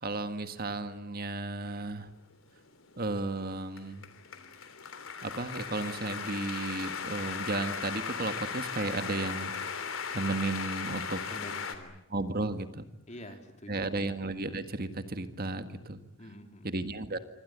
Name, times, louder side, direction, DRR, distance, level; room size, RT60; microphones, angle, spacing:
voice 1, 0.0-2.1 3.0-4.1 5.2-9.9 10.1-11.2 12.1-12.8 13.7-16.0 16.6-17.2, right 2 dB, 45° right, 9 dB, 1.7 m, -34 dB
sound 1, 2.5-11.8, left 6 dB, 75° left, 3.4 m, -38 dB
voice 2, 11.3-12.0 13.1-13.9 16.2-16.7, left 1 dB, 35° left, 5 dB, 3.8 m, -46 dB
26.5 x 25.0 x 8.2 m, 0.84 s
head